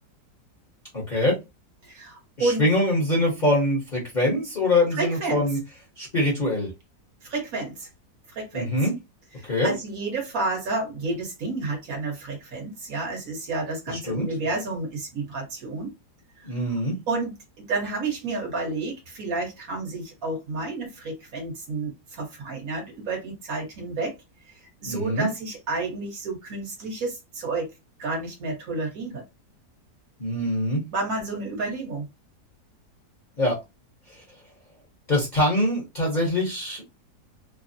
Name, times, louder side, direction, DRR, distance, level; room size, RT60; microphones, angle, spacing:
voice 1, 0.9-1.3 2.4-5.6 6.0-6.7 8.5-8.9 9.4-9.7 13.9-14.3 16.4-17.0 24.8-25.3 30.2-30.8 33.4-33.6 35.1-36.8, left 1 dB, 35° left, 0.8 m, -24 dB
voice 2, 1.8-2.6 5.0-5.4 7.2-7.9 8.3-8.7 9.4-15.9 16.4-16.5 17.1-24.2 24.8-27.7 28.0-29.2 30.9-32.0, right 3 dB, 60° right, 1.4 m, -30 dB
3.3 x 2.0 x 2.5 m
omnidirectional pair, 1.8 m